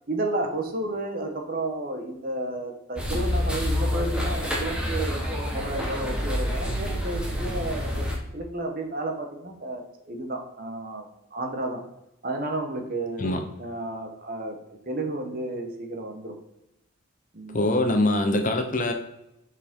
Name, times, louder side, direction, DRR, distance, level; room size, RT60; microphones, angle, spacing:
voice 1, 0.1-5.2 5.5-8.1 8.3-11.8 12.2-13.3 13.6-14.6 14.9-16.4 17.3-17.7, right 2 dB, 40° right, 4 dB, 1.0 m, -32 dB
sound 1, 3.0-8.2, equal, 5° right, 1.1 m, -28 dB
voice 2, 17.5-18.9, left 1 dB, 40° left, 5 dB, 0.7 m, -23 dB
6.3 x 5.2 x 3.7 m, 0.85 s
head